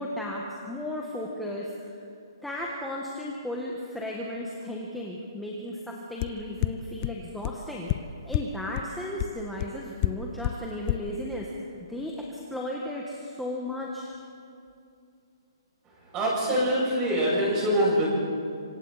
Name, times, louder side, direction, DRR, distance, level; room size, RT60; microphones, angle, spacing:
voice 1, 0.0-1.7 2.4-7.9 8.2-11.5 11.9-14.1, left 1 dB, ahead, -3 dB, 1.5 m, -35 dB
sound 1, 6.2-6.3 6.6-6.7 7.0-7.1 7.4-7.5 7.9-8.0 8.3-8.4 8.8-8.9 9.2-9.3 9.6-9.7 10.0-10.1 10.4-10.5 10.9-11.0, left 18 dB, 30° left, 0.5 m, -25 dB
voice 2, 16.1-18.1, equal, 20° right, -3 dB, 7.1 m, -24 dB
26.5 x 26.0 x 4.2 m, 2.5 s
hypercardioid pair, 165°, 3 cm